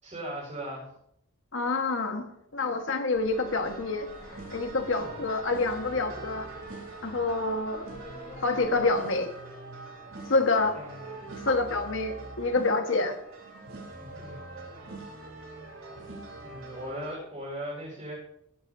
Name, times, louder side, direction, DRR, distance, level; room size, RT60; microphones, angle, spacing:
voice 1, 0.0-0.9 10.7-11.2 14.0-14.4 15.0-15.2 16.4-18.1, equal, 30° right, -6 dB, 5.8 m, -38 dB
voice 2, 1.5-2.3 2.5-4.1 4.5-6.5 7.0-7.9 8.4-9.3 10.3-10.8 11.4-13.2, left 3 dB, 60° left, 5 dB, 1.5 m, -27 dB
sound 1, 3.1-8.9, left 1 dB, 35° left, 3.7 m, -50 dB
sound 2, 3.3-17.2, right 2 dB, 65° right, 3.4 m, -43 dB
16.5 x 12.5 x 2.8 m, 0.74 s
head